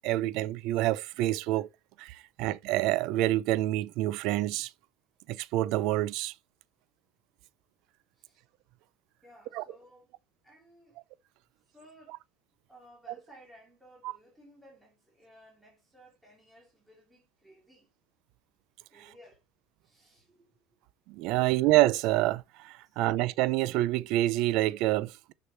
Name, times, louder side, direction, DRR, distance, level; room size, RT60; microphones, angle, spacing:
voice 1, 0.0-1.7 2.0-4.7 5.3-6.3 9.5-9.6 21.1-25.3, right 16 dB, 50° right, 0.4 m, -27 dB
voice 2, 9.2-10.1 10.4-11.0 11.7-12.2 12.7-17.9 18.9-19.4 19.8-20.8 21.4-21.6 22.8-23.0, equal, 5° right, 2.7 m, -57 dB
6.4 x 6.0 x 4.1 m
cardioid pair, 175°, 0 cm